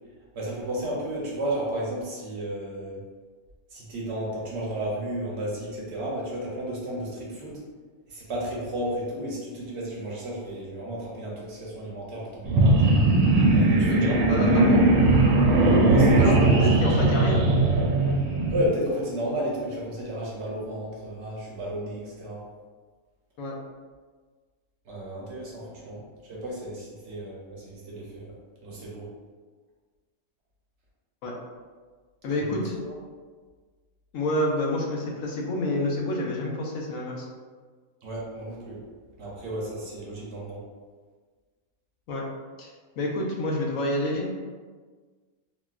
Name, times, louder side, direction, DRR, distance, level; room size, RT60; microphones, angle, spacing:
voice 1, 0.3-3.0 3.7-7.6 8.1-12.8 13.5-14.6 15.5-16.7 18.5-22.4 24.9-28.3 28.6-29.1 32.3-32.9 38.0-38.8 39.2-40.6, right 1 dB, 55° right, -4 dB, 1.0 m, -33 dB
sound 1, 12.4-18.7, right 2 dB, 85° right, 1.1 m, -19 dB
voice 2, 13.9-14.8 16.2-17.4 23.4-23.5 31.2-31.3 32.2-32.8 34.1-37.3 42.1-42.2 42.6-42.7 43.0-44.3, left 1 dB, 70° left, -2 dB, 1.0 m, -28 dB
3.9 x 2.2 x 2.4 m, 1.5 s
omnidirectional pair, 1.5 m